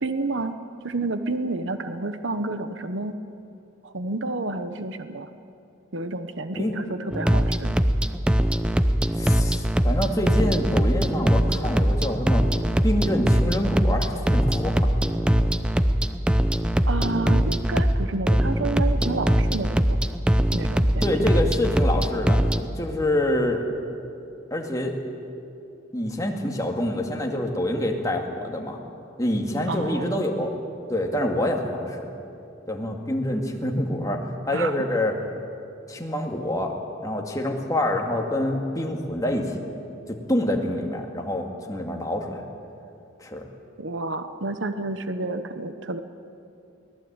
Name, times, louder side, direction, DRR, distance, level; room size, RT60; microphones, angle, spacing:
voice 1, 0.0-0.6 0.8-3.2 3.8-5.3 5.9-7.8 16.9-19.9 20.5-21.3 29.7-30.2 34.5-34.7 43.8-46.0, right 2 dB, 75° right, 10 dB, 1.0 m, -30 dB
sound 1, 7.1-22.6, equal, 5° right, 0.6 m, -22 dB
voice 2, 9.1-12.4 12.8-14.9 21.0-22.4 22.8-23.6 24.5-25.0 25.9-28.8 29.2-30.5 30.9-32.1 32.7-35.2 35.9-36.7 37.0-39.6 40.1-42.4 43.2-43.5, left 1 dB, 20° left, 1 dB, 2.2 m, -26 dB
23.5 x 18.0 x 8.9 m, 2.6 s
head